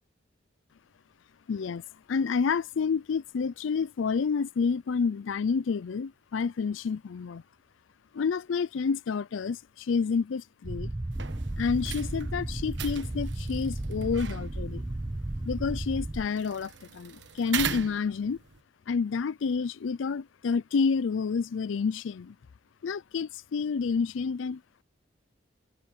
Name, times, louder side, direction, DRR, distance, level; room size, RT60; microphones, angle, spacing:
voice 1, 1.5-1.8 2.1-7.4 8.1-10.9 11.6-14.8 15.5-18.4 18.9-22.3 22.8-24.8, left 5 dB, 85° left, 0.4 m, -29 dB
sound 1, 10.6-16.3, right 1 dB, 20° right, 0.5 m, -34 dB
sound 2, 11.1-18.6, right 7 dB, 70° right, 1.2 m, -40 dB
head